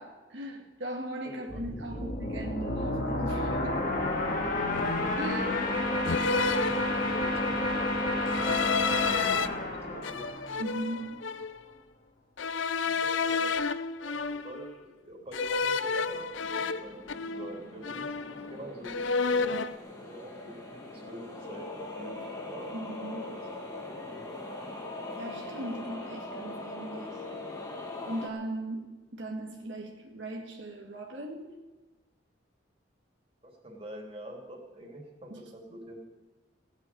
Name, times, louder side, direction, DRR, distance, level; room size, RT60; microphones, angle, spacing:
voice 1, 0.0-3.9 5.1-5.5 10.6-11.2 22.7-23.3 25.2-27.2 28.1-31.5 35.3-35.4, right 1 dB, 75° right, 0 dB, 1.9 m, -38 dB
voice 2, 1.2-2.1 5.4-5.5 5.9-10.2 12.8-13.6 14.0-16.3 16.6-19.6 20.0-22.7 23.2-24.2 33.4-36.0, right 1 dB, 30° right, -1 dB, 3.2 m, -46 dB
sound 1, 1.5-11.0, left 1 dB, 45° left, 2.4 m, -30 dB
sound 2, 3.6-3.9 4.7-5.3 6.1-7.5 8.3-9.5 10.0-11.6 12.4-14.7 15.3-17.6 17.8-18.6 18.8-19.8, left 5 dB, 90° left, 0.6 m, -31 dB
sound 3, 15.9-28.3, left 2 dB, 20° left, 2.3 m, -41 dB
17.0 x 8.1 x 8.8 m, 1.1 s
head